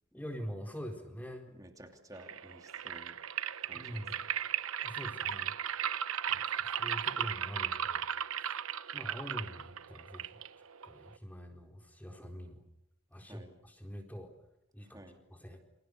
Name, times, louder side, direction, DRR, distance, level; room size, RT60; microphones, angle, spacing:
voice 1, 0.1-1.5 3.7-4.2 4.8-5.5 6.3-8.0 8.4-8.6 8.9-10.4 10.8-12.6 13.1-14.3 14.7-15.0 15.3-15.6, equal, 10° left, 4 dB, 4.1 m, -44 dB
voice 2, 1.5-3.2 3.6-4.0 13.2-13.5 14.8-15.2, right 1 dB, 15° right, 4 dB, 2.9 m, -53 dB
sound 1, 2.2-11.2, right 9 dB, 80° right, 0.9 m, -36 dB
29.0 x 26.5 x 6.7 m, 0.81 s
head